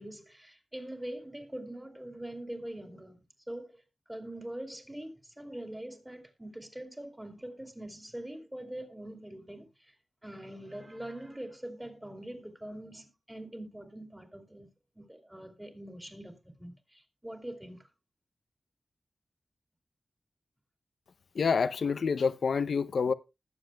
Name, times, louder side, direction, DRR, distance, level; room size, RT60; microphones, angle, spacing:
voice 1, 0.0-9.9 10.2-14.7 14.9-17.9, right 1 dB, 10° right, 2.7 m, -43 dB
voice 2, 21.3-23.1, left 5 dB, 80° left, 0.5 m, -27 dB
20.0 x 7.5 x 2.2 m
wide cardioid pair, 90°, 0 cm